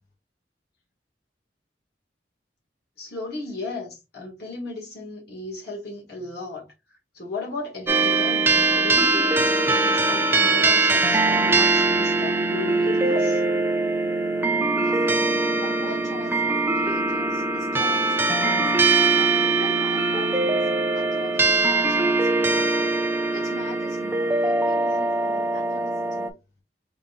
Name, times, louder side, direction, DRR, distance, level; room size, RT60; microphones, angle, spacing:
voice 1, 3.0-6.7 7.1-13.4, left 3 dB, 60° left, 1.9 m, -35 dB
sound 1, 7.9-26.3, right 3 dB, 15° right, 0.4 m, -22 dB
voice 2, 14.8-18.7 19.1-22.9 23.3-26.3, left 1 dB, 45° left, 1.2 m, -42 dB
3.8 x 3.7 x 2.5 m
head